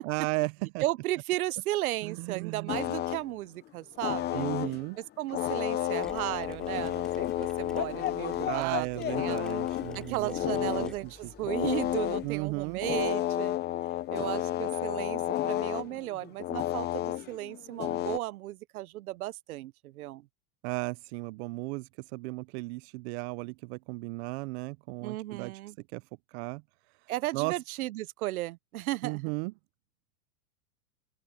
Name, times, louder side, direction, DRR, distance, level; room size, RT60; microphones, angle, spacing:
voice 1, 0.0-0.8 2.0-2.7 4.3-5.0 8.5-11.3 12.2-12.8 20.6-25.5 25.9-26.0 26.3-26.6 27.3-27.5 29.0-29.5, right 27 dB, 50° right, 0.6 m, -35 dB
voice 2, 0.8-4.5 5.2-8.9 9.2-9.4 9.9-13.5 14.1-20.3 25.0-25.7 27.1-29.2, right 16 dB, 85° right, 0.8 m, -35 dB
sound 1, 2.7-3.2 4.0-4.9 5.3-11.0 11.4-12.3 12.8-18.2, left 13 dB, 25° left, 0.7 m, -31 dB
Mechanisms, 6.0-13.1, left 1 dB, ahead, 7.2 m, -52 dB
open air
supercardioid pair, 135°, 43 cm